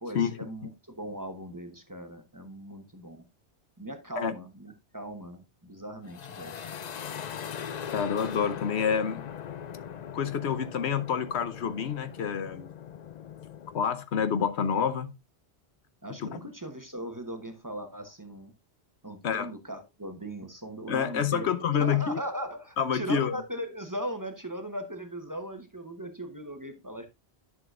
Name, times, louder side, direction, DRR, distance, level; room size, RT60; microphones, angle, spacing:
voice 1, 0.0-3.2 3.8-6.7 16.0-18.5 19.0-21.5 21.8-27.1, equal, 20° right, 1.0 m, -39 dB
sound 1, 6.0-13.8, left 8 dB, 50° left, 0.6 m, -40 dB
voice 2, 7.9-9.2 10.1-12.7 13.7-15.1 16.2-16.4 19.2-19.5 20.9-22.2 22.8-23.3, left 7 dB, 80° left, 1.1 m, -28 dB
10.5 x 6.2 x 2.4 m
omnidirectional pair, 1.1 m